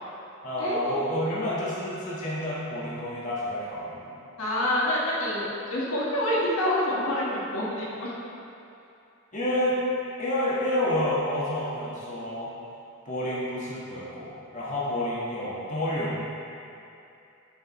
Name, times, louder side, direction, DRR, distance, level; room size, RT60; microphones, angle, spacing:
voice 1, 0.4-4.1 9.3-9.8 10.2-12.5 13.0-16.2, left 1 dB, 35° left, -7 dB, 1.3 m, -29 dB
voice 2, 4.4-8.1, left 1 dB, 80° left, -6 dB, 1.6 m, -27 dB
9.4 x 6.6 x 3.0 m, 2.7 s
head